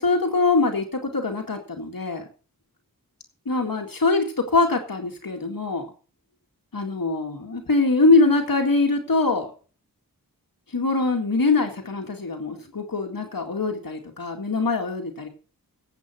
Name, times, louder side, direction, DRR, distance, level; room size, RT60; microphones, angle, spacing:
voice 1, 0.0-2.2 3.5-5.9 6.7-9.5 10.7-15.3, left 3 dB, 70° left, 2 dB, 2.1 m, -23 dB
16.0 x 8.0 x 4.4 m, 0.39 s
wide cardioid pair, 60°, 35 cm